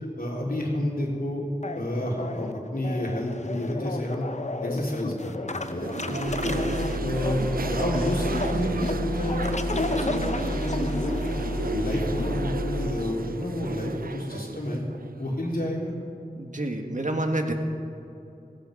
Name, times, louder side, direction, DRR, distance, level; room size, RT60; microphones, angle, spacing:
voice 1, 0.2-1.4 1.7-4.2 4.6-6.6 7.0-11.3 11.7-14.8 15.2-15.9, left 1 dB, 70° left, -2 dB, 3.2 m, -30 dB
sound 1, 1.6-12.4, left 2 dB, 50° left, 0.8 m, -34 dB
sound 2, 5.6-15.6, right 5 dB, 70° right, 0.5 m, -34 dB
sound 3, 6.2-12.9, left 1 dB, 20° left, 3.2 m, -31 dB
voice 2, 16.4-17.5, right 1 dB, 55° right, 3 dB, 1.8 m, -28 dB
17.0 x 16.0 x 5.1 m, 2.7 s
wide cardioid pair, 50°, 15 cm